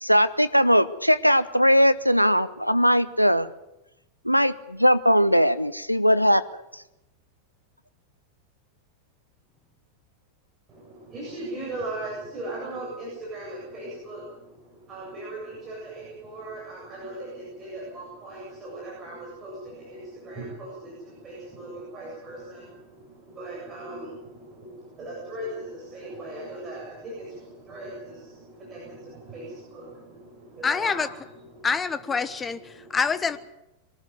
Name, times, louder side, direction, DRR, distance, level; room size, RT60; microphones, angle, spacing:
voice 1, 0.0-3.5 4.2-6.4, equal, 90° left, 14 dB, 0.8 m, -20 dB
voice 2, 10.7-31.7 32.2-33.0, right 1 dB, 25° right, -4 dB, 7.6 m, -39 dB
voice 3, 30.6-31.1 31.6-33.4, left 5 dB, 15° left, 14 dB, 1.1 m, -26 dB
23.0 x 13.5 x 9.4 m, 0.92 s
figure-of-eight pair, 90°, 0 cm